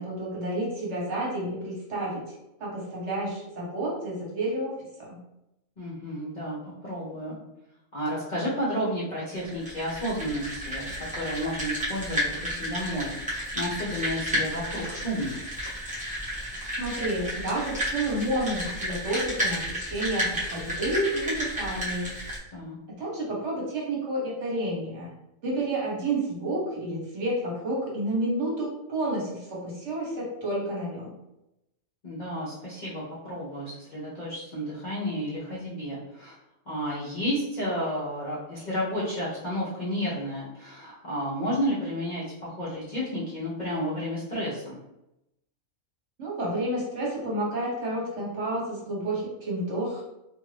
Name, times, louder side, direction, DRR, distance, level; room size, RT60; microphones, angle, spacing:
voice 1, 0.0-5.2 16.8-22.1 22.9-25.1 25.4-31.1 46.2-50.0, right 1 dB, 60° right, -4 dB, 1.1 m, -30 dB
voice 2, 5.8-7.4 7.9-10.9 11.1-15.4 22.5-22.8 32.0-36.4 36.7-44.8, equal, 45° left, -8 dB, 0.6 m, -31 dB
sound 1, 9.3-22.4, equal, 10° right, 0.6 m, -32 dB
2.6 x 2.5 x 3.2 m, 0.88 s
omnidirectional pair, 1.5 m